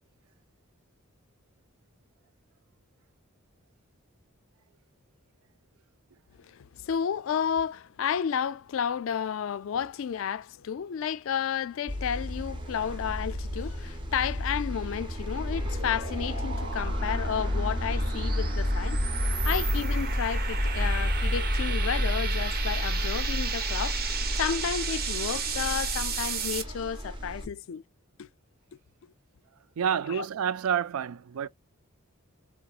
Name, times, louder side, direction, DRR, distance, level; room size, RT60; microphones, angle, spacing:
voice 1, 6.4-27.8 28.2-28.3 30.1-30.2, left 8 dB, 65° left, 0.3 m, -32 dB
sound 1, 11.9-27.5, equal, 20° right, 0.7 m, -30 dB
sound 2, 15.0-26.6, right 6 dB, 45° right, 0.9 m, -35 dB
voice 2, 29.8-31.5, right 8 dB, 80° right, 0.4 m, -28 dB
3.8 x 2.8 x 2.4 m
head